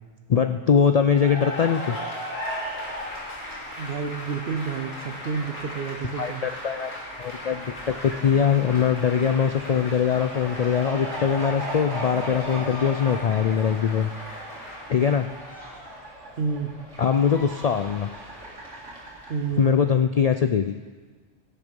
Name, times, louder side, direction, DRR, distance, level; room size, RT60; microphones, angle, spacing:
voice 1, 0.3-2.0 6.2-14.1 14.9-15.3 17.0-18.1 19.6-20.8, left 7 dB, 85° left, 8 dB, 0.3 m, -22 dB
Cheering / Applause, 1.0-15.9, equal, 45° left, 2.8 m, -38 dB
Fowl, 2.5-19.8, right 1 dB, 85° right, 2.7 m, -39 dB
voice 2, 3.8-6.4 16.4-16.8 19.3-19.7, right 5 dB, 60° right, 9 dB, 0.9 m, -29 dB
17.0 x 6.8 x 5.2 m, 1.4 s
omnidirectional pair, 1.2 m